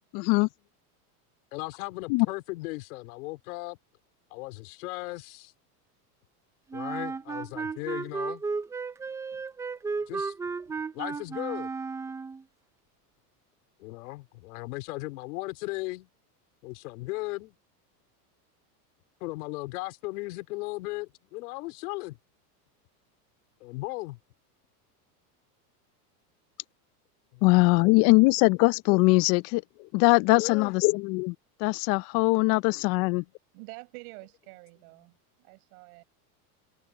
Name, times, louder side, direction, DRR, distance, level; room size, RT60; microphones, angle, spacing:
voice 1, 0.1-0.5 2.1-2.3 27.4-29.6 29.9-31.3 31.6-33.2, left 26 dB, 45° left, 0.6 m, -21 dB
voice 2, 1.5-3.8 4.3-5.5 6.7-8.4 10.1-10.3 10.9-11.7 13.8-16.1 16.6-17.5 19.2-22.2 23.6-24.2 27.3-27.4 30.3-30.8 33.2-33.3, left 23 dB, 70° left, 4.4 m, -37 dB
Wind instrument woodwind instrument, 6.7-12.4, right 4 dB, 5° right, 0.4 m, -34 dB
voice 3, 33.5-35.1 35.4-36.0, right 30 dB, 60° right, 4.9 m, -47 dB
supercardioid pair, 130°, 47 cm